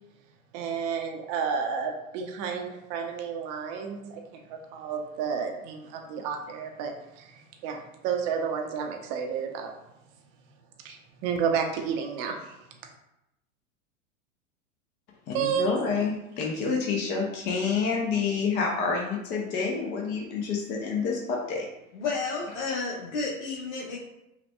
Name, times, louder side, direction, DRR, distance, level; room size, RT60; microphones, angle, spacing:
voice 1, 0.5-9.7 10.8-12.5 15.3-15.7, right 6 dB, 35° right, 3 dB, 0.6 m, -31 dB
voice 2, 15.3-21.6, left 5 dB, 25° left, 0 dB, 0.5 m, -28 dB
voice 3, 21.9-24.0, left 4 dB, 60° left, -4 dB, 1.0 m, -31 dB
5.7 x 2.2 x 2.2 m, 0.88 s
figure-of-eight pair, 95°, 43 cm